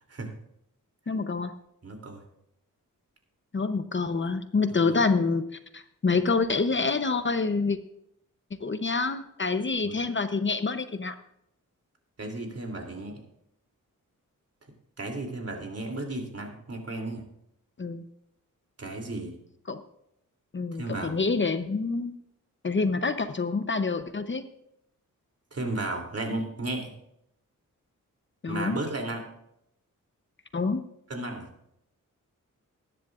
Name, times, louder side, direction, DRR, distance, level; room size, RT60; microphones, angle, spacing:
voice 1, 1.1-1.5 3.5-5.4 5.7-7.8 8.6-11.2 17.8-18.0 19.7-19.8 20.5-22.1 22.6-24.5 28.4-28.8 30.5-30.8, left 4 dB, 35° left, 9 dB, 0.8 m, -27 dB
voice 2, 1.8-2.2 4.9-5.0 9.8-9.9 12.2-13.1 15.0-17.2 18.8-19.3 20.8-21.2 25.5-26.9 28.5-29.2 31.1-31.5, right 2 dB, 50° right, 2 dB, 3.0 m, -34 dB
20.5 x 10.5 x 2.5 m, 0.78 s
wide cardioid pair, 110°, 32 cm